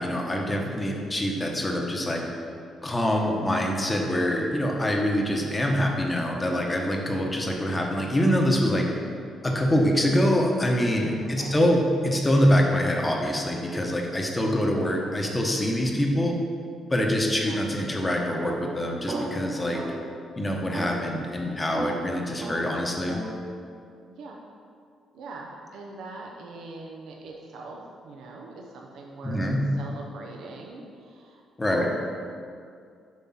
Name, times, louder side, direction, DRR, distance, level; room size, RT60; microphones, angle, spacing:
voice 1, 0.0-2.2 2.8-8.8 9.4-16.4 16.9-19.8 20.4-23.2 29.2-29.6 31.6-31.9, equal, 20° left, 0 dB, 1.1 m, -25 dB
voice 2, 11.2-11.5 14.3-14.9 17.3-17.6 24.1-24.4 25.1-29.4 29.8-31.4 31.7-31.9, right 3 dB, 80° right, -1 dB, 0.7 m, -42 dB
sound 1, 18.4-20.2 20.7-23.4, right 2 dB, 55° right, 1.5 m, -35 dB
7.3 x 3.6 x 5.8 m, 2.3 s
cardioid pair, 90°, 0 cm